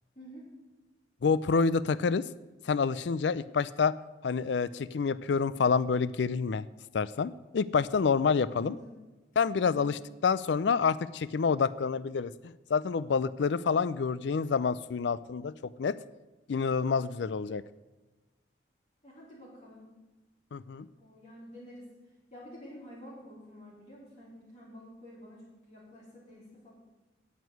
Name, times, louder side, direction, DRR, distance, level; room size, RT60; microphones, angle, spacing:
voice 1, 0.1-0.5 8.5-9.0 9.6-10.0 19.0-19.9 20.9-21.9 22.3-26.7, equal, 40° left, -6 dB, 4.1 m, -49 dB
voice 2, 1.2-2.2 2.6-3.9 4.2-6.7 6.9-8.8 9.4-16.0 16.5-17.6 20.5-20.9, left 5 dB, 75° left, 18 dB, 0.4 m, -28 dB
9.2 x 8.2 x 9.5 m, 1.2 s
head